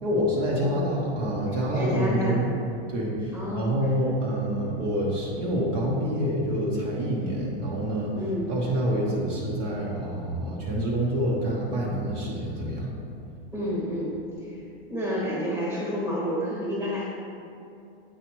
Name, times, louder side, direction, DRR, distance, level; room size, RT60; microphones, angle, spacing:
voice 1, 0.0-2.5 2.9-8.1 8.5-12.9, equal, 50° right, -4 dB, 1.1 m, -27 dB
voice 2, 0.6-0.9 1.5-2.4 3.3-3.9 8.1-8.5 13.5-14.6 14.9-17.0, equal, 10° right, -7 dB, 1.4 m, -30 dB
8.5 x 4.9 x 3.1 m, 2.6 s
supercardioid pair, 165°, 30 cm